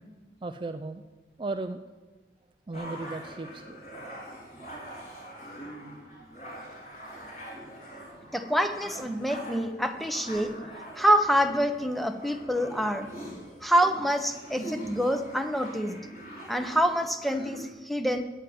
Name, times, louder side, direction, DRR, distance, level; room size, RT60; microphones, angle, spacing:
voice 1, 0.4-1.0 1.4-1.8 2.7-3.8, right 2 dB, 25° right, 8 dB, 0.4 m, -35 dB
sound 1, 2.7-17.7, equal, 40° left, 3.9 m, -43 dB
voice 2, 8.3-10.6 10.9-13.1 13.6-16.0 16.5-18.2, equal, ahead, 7 dB, 0.7 m, -26 dB
9.0 x 8.9 x 9.3 m, 1.2 s
head